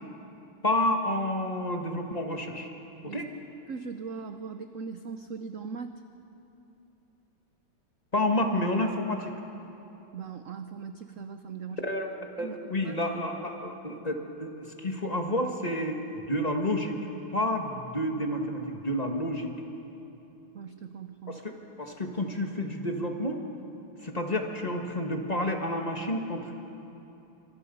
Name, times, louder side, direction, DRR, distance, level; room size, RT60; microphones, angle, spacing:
voice 1, 0.6-2.7 3.1-3.3 8.1-9.3 11.8-12.1 12.4-17.0 17.3-19.5 21.3-21.4 21.8-23.4 24.0-26.5, left 1 dB, 20° left, 2 dB, 1.6 m, -30 dB
voice 2, 3.7-6.0 10.1-11.9 12.4-13.0 20.5-21.4, right 5 dB, 60° right, 8 dB, 0.8 m, -40 dB
26.5 x 25.5 x 5.4 m, 2.9 s
omnidirectional pair, 2.2 m